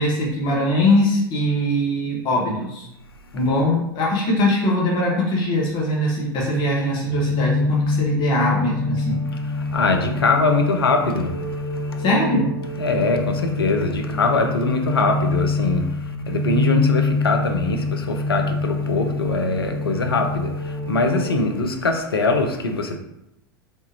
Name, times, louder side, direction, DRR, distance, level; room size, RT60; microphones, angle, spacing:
voice 1, 0.0-2.9 3.3-9.2 12.0-12.5, left 1 dB, 40° left, -4 dB, 1.2 m, -21 dB
sound 1, 7.1-21.4, left 3 dB, 85° right, 0.9 m, -25 dB
voice 2, 9.4-12.0 12.8-15.9 16.3-23.0, left 3 dB, 75° left, 4 dB, 0.6 m, -22 dB
3.5 x 3.4 x 2.7 m, 0.85 s
figure-of-eight pair, 85°, 12 cm